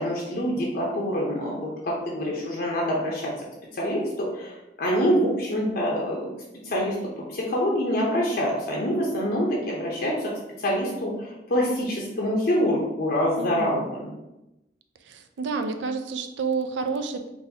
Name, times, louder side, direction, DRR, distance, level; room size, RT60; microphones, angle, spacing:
voice 1, 0.0-3.3 3.7-6.3 6.6-7.0 7.3-10.3 10.6-14.1, equal, 60° left, -3 dB, 0.7 m, -26 dB
voice 2, 13.4-13.9 15.0-17.3, right 4 dB, 85° right, 7 dB, 0.4 m, -30 dB
3.9 x 2.6 x 2.7 m, 0.93 s
head